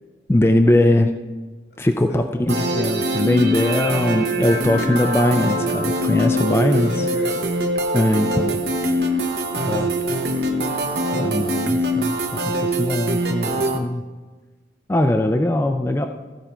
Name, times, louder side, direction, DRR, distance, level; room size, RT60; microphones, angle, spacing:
voice 1, 0.3-1.1 1.8-7.1 7.9-8.6 9.0-9.2 9.7-9.9 11.1-14.0 14.9-16.1, left 1 dB, 15° left, 6 dB, 0.4 m, -20 dB
sound 1, 2.5-13.8, right 1 dB, 65° right, 0.9 m, -23 dB
voice 2, 6.6-7.5 9.4-10.7, equal, 75° left, 0 dB, 2.3 m, -37 dB
15.0 x 5.6 x 4.4 m, 1.3 s
head